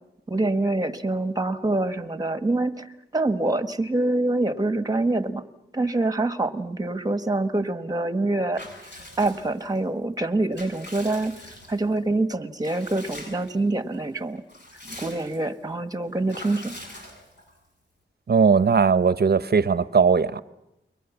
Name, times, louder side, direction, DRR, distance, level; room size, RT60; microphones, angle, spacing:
voice 1, 0.3-2.9 3.1-5.5 5.7-8.6 9.0-11.3 11.7-14.4 15.0-16.8, right 2 dB, 20° right, 1.4 m, -25 dB
Water / Bathtub (filling or washing) / Liquid, 8.5-9.8 10.3-12.0 12.6-13.6 13.9-14.0 14.4-15.5 16.3-17.6, left 1 dB, 55° left, 6.7 m, -43 dB
voice 2, 18.3-20.4, right 5 dB, 50° right, 0.9 m, -19 dB
29.5 x 23.0 x 7.2 m
wide cardioid pair, 110°, 21 cm